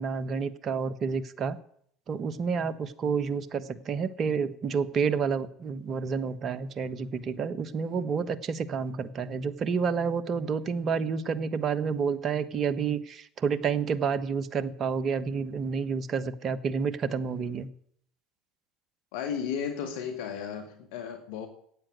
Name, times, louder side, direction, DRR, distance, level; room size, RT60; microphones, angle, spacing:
voice 1, 0.0-1.6 2.1-17.7, right 6 dB, 45° right, 1.2 m, -29 dB
voice 2, 19.1-21.5, left 7 dB, 70° left, 1.9 m, -34 dB
13.0 x 9.0 x 9.4 m
hypercardioid pair, 75°, 0 cm